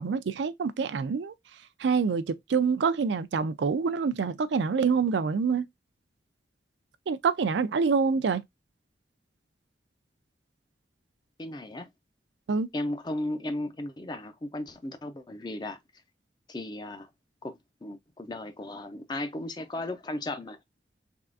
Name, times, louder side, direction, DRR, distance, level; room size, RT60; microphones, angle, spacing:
voice 1, 0.0-1.3 1.8-5.7 7.1-8.4 12.5-12.7, right 5 dB, 90° right, 0.4 m, -26 dB
voice 2, 11.4-11.9 12.7-15.8 16.5-17.1 17.4-20.6, left 1 dB, 25° left, 0.5 m, -35 dB
3.5 x 3.3 x 2.5 m
head